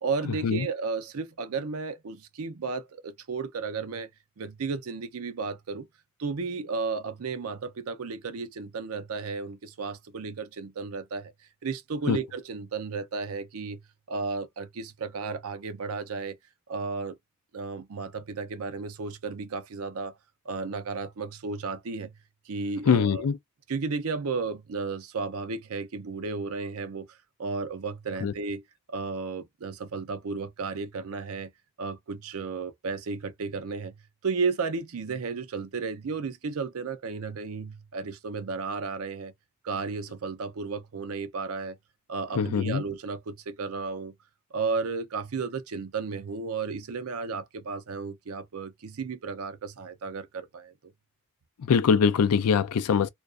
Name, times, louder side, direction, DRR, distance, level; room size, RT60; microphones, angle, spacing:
voice 1, 0.0-4.1 4.4-5.9 6.2-11.3 11.6-13.8 14.1-16.4 16.7-17.2 17.5-20.1 20.4-22.1 22.5-23.3 23.7-28.6 28.9-31.5 31.8-34.0 34.2-39.3 39.6-41.8 42.1-44.1 44.5-50.7, right 4 dB, 75° right, 0.5 m, -33 dB
voice 2, 22.9-23.3 28.2-28.3 42.4-42.8 51.7-53.1, left 6 dB, 90° left, 0.4 m, -22 dB
2.4 x 2.3 x 2.3 m
head